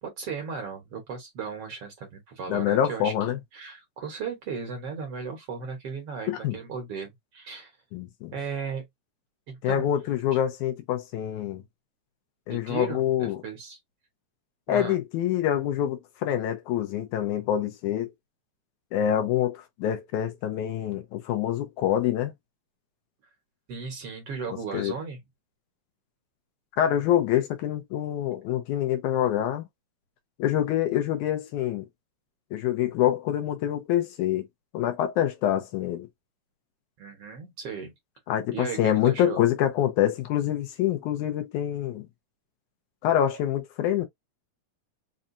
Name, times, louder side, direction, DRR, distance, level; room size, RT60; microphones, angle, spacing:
voice 1, 0.0-7.7 8.3-8.8 9.5-9.9 10.3-10.4 12.5-13.8 14.7-15.0 23.7-25.2 37.0-37.9 38.5-39.4, right 5 dB, 60° right, 1.7 m, -36 dB
voice 2, 2.5-3.4 6.3-6.6 7.9-8.3 9.6-11.6 12.5-13.4 14.7-18.1 18.9-22.3 24.7-24.9 26.8-29.7 30.4-31.9 32.5-34.5 34.7-36.1 38.3-42.1 43.0-44.1, left 11 dB, 75° left, 2.2 m, -26 dB
5.4 x 2.4 x 2.6 m
omnidirectional pair, 3.7 m